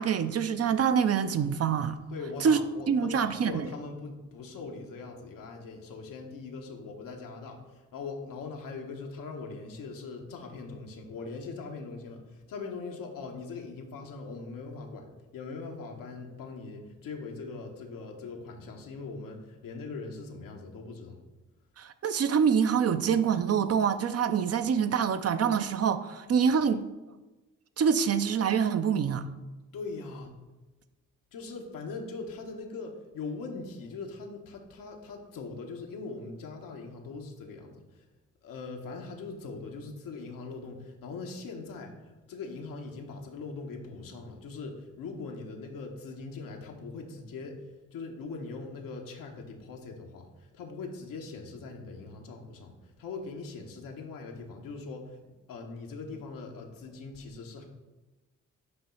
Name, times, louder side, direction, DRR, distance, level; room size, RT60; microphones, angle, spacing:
voice 1, 0.0-2.0 2.4-2.6 2.9-3.6 21.8-26.8 27.8-29.3, right 7 dB, 50° right, 11 dB, 0.5 m, -25 dB
voice 2, 2.1-15.1 15.3-21.2 29.7-30.3 31.3-38.0 38.4-47.6 47.9-55.2 55.5-57.6, left 4 dB, 90° left, 2 dB, 1.0 m, -41 dB
7.9 x 3.0 x 5.6 m, 1.1 s
cardioid pair, 60°, 33 cm